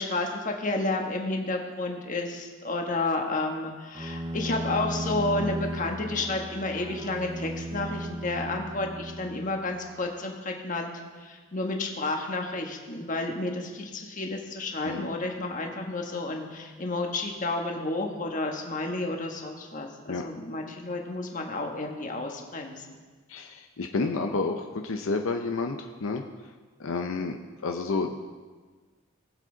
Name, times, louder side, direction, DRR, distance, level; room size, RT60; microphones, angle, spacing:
voice 1, 0.0-10.9 11.2-19.9 20.2-22.8, left 2 dB, 40° left, 2 dB, 1.4 m, -31 dB
Bowed string instrument, 3.9-9.8, right 1 dB, 20° right, 0.5 m, -35 dB
voice 2, 23.3-26.2 26.8-27.4 27.6-28.2, left 3 dB, 75° left, 4 dB, 0.7 m, -30 dB
19.5 x 7.6 x 3.9 m, 1.4 s
head